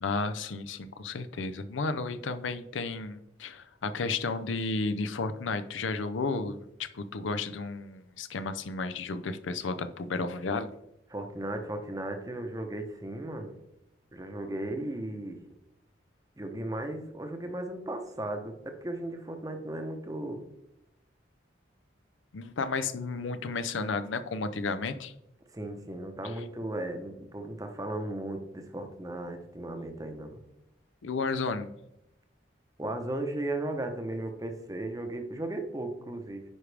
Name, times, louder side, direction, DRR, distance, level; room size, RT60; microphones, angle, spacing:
voice 1, 0.0-10.7 22.3-25.1 31.0-31.7, left 3 dB, 85° left, 11 dB, 0.5 m, -33 dB
voice 2, 11.1-13.5 14.1-15.4 16.4-20.4 25.5-30.4 32.8-36.4, right 1 dB, 20° right, 6 dB, 0.8 m, -36 dB
9.5 x 5.0 x 3.4 m, 0.84 s
head